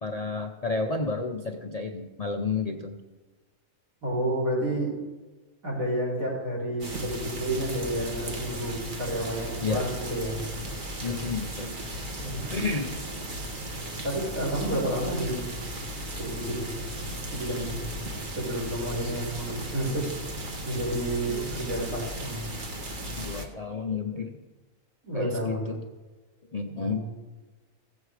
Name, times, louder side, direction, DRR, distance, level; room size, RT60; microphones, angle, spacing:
voice 1, 0.0-3.0 9.6-9.9 11.0-11.8 12.5-12.9 21.3-21.5 23.2-24.4 25.1-25.8 26.5-27.1, left 4 dB, 45° left, 3 dB, 0.5 m, -31 dB
voice 2, 4.0-4.9 5.6-10.4 12.2-12.8 14.0-15.5 16.2-16.7 17.3-17.8 18.3-20.3 20.6-22.4 25.0-25.7 26.7-27.0, right 1 dB, 70° right, -4 dB, 5.1 m, -30 dB
sound 1, 6.8-23.5, right 1 dB, 35° right, 1.2 m, -36 dB
15.5 x 7.5 x 4.8 m, 1.2 s
omnidirectional pair, 1.5 m